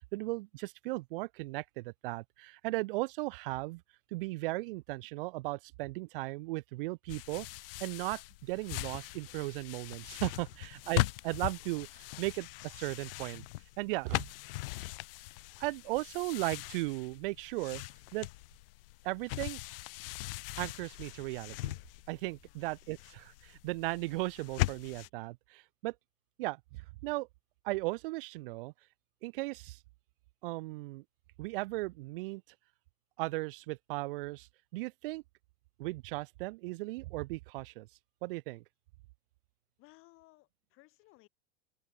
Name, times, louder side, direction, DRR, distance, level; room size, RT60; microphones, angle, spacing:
voice 1, 0.1-3.8 4.1-7.5 7.8-13.4 13.8-14.2 15.6-17.8 18.1-18.3 19.0-19.6 20.6-21.7 22.1-25.9 26.4-27.3 27.6-28.7 29.2-29.8 30.4-31.0 31.4-32.4 33.2-34.5 34.7-35.2 35.8-37.9 38.2-38.6, right 22 dB, 65° right, 1.5 m, -36 dB
sound 1, 7.1-25.1, left 20 dB, 70° left, 1.0 m, -40 dB
voice 2, 39.8-41.3, left 21 dB, 45° left, 7.4 m, -61 dB
open air
supercardioid pair, 135°, 29 cm